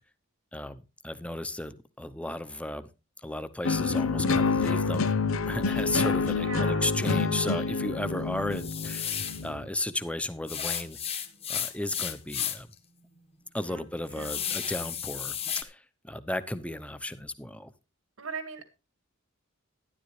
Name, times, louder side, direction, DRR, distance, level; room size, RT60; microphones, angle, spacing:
voice 1, 0.5-2.9 3.2-5.1 5.5-11.2 11.5-12.7 13.5-15.4 15.6-17.7, left 1 dB, 5° left, 12 dB, 0.8 m, -34 dB
sound 1, 3.6-9.7, left 4 dB, 90° left, 0.8 m, -27 dB
voice 2, 6.3-6.9 13.7-13.8 14.2-14.5 18.2-18.7, right 4 dB, 85° right, 9 dB, 2.0 m, -39 dB
sound 2, 8.5-9.5 10.5-12.7 13.2-13.3 13.7-15.6, left 8 dB, 30° left, 1.4 m, -33 dB
12.5 x 11.0 x 3.3 m, 0.29 s
head